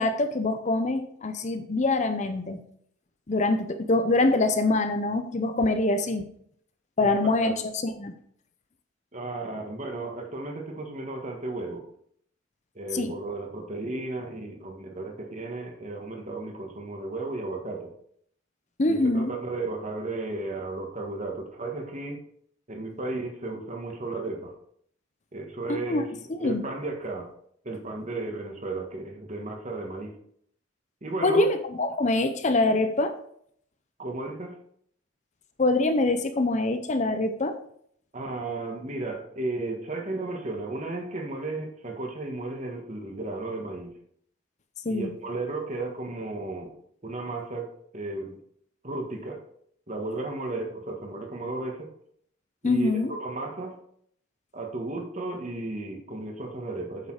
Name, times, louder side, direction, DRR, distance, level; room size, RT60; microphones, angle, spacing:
voice 1, 0.0-2.6 3.3-6.3 7.0-7.5 7.8-8.1 12.9-13.1 18.8-19.3 25.7-26.0 26.3-26.6 31.2-33.1 35.6-37.5 44.8-45.1 52.6-53.1, left 2 dB, 35° left, 8 dB, 0.6 m, -24 dB
voice 2, 9.1-11.8 12.7-17.9 18.8-22.2 22.7-24.5 25.3-26.1 26.4-27.3 27.6-30.1 31.0-31.4 34.0-34.6 38.1-43.9 44.9-46.7 47.0-48.4 48.8-49.4 49.9-51.9 52.6-53.8 54.5-57.1, right 2 dB, 35° right, 2 dB, 1.6 m, -34 dB
8.2 x 6.7 x 4.8 m, 0.67 s
head